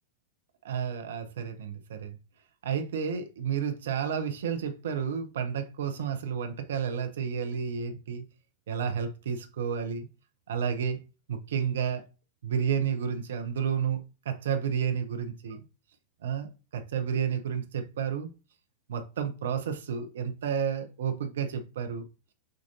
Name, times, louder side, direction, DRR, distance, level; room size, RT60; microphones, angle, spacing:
voice 1, 0.6-2.2 2.6-8.2 8.7-10.1 10.5-11.0 11.3-12.0 12.4-14.0 14.2-15.6 16.2-18.3 18.9-22.0, right 7 dB, 60° right, 0.7 m, -31 dB
6.4 x 2.5 x 2.7 m
figure-of-eight pair, 90°, 0 cm